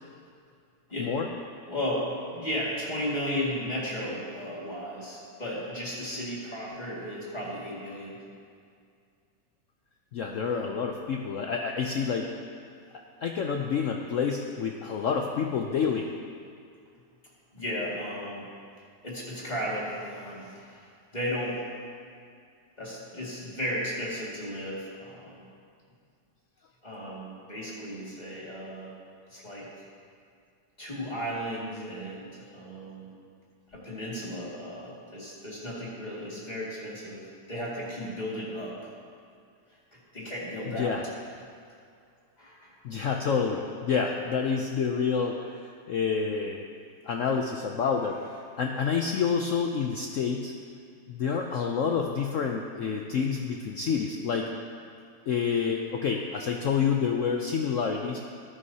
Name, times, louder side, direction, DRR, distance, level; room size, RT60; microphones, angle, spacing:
voice 1, 1.7-8.2 17.5-18.5 19.0-20.8 21.1-21.6 22.8-25.3 26.8-28.9 29.3-29.7 30.8-33.1 33.7-37.2 37.5-38.9 40.1-41.0 42.4-42.7, equal, 25° left, -6 dB, 2.2 m, -34 dB
voice 2, 10.1-12.3 13.2-16.1 27.0-27.1 40.8-41.0 42.8-46.6 47.1-48.2 48.6-50.5 51.1-54.5 55.3-58.2, left 6 dB, 75° left, 2 dB, 0.7 m, -28 dB
14.0 x 11.0 x 2.8 m, 2.3 s
omnidirectional pair, 1.9 m